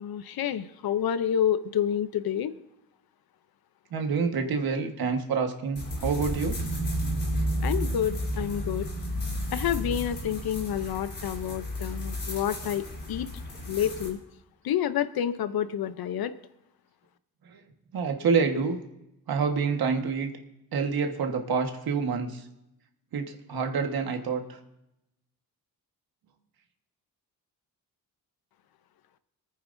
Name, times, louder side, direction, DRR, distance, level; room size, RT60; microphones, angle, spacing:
voice 1, 0.0-2.5 7.6-8.9 9.5-13.3 13.7-14.2 14.6-16.3, left 10 dB, 75° left, 12 dB, 0.7 m, -29 dB
voice 2, 3.9-6.6 17.4-17.6 17.9-18.8 19.3-20.3 20.7-22.4 23.1-24.6, right 5 dB, 75° right, 4 dB, 1.5 m, -27 dB
sound 1, 5.8-14.1, equal, 30° left, 4.1 m, -32 dB
25.0 x 9.4 x 2.6 m, 0.88 s
wide cardioid pair, 175°, 37 cm